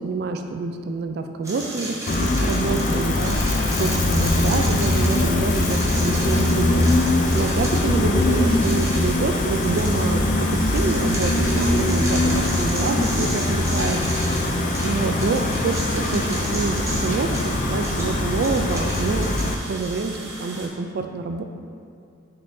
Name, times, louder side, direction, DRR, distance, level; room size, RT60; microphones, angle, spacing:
voice 1, 0.0-3.4 3.8-14.0 14.8-21.4, right 3 dB, 55° right, 6 dB, 0.3 m, -27 dB
sound 1, 1.4-20.7, right 1 dB, 15° right, 1.0 m, -34 dB
Gull seagull, 2.1-19.5, left 2 dB, 40° left, 0.4 m, -22 dB
6.7 x 5.4 x 2.6 m, 2.4 s
head